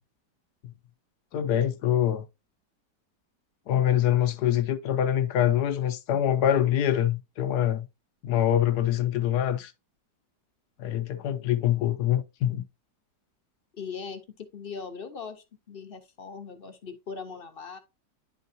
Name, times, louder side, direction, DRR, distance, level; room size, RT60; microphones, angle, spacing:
voice 1, 1.3-2.2 3.7-7.9 8.2-9.7 10.8-12.6, left 11 dB, 70° left, 1.2 m, -25 dB
voice 2, 13.7-17.8, left 5 dB, 40° left, 0.8 m, -40 dB
10.0 x 4.7 x 2.7 m
omnidirectional pair, 1.9 m